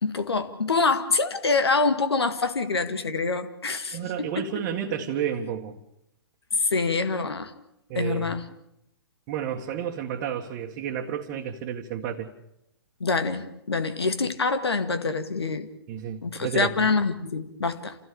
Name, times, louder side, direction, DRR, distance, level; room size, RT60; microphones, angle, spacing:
voice 1, 0.0-4.0 4.4-4.5 6.6-7.5 8.0-8.4 13.0-15.7 16.2-18.0, left 4 dB, 80° left, 10 dB, 1.9 m, -25 dB
voice 2, 3.9-5.8 7.9-8.3 9.3-12.3 15.9-16.9, right 8 dB, 35° right, 0 dB, 1.8 m, -31 dB
28.0 x 16.5 x 7.0 m, 0.81 s
figure-of-eight pair, 125°, 13 cm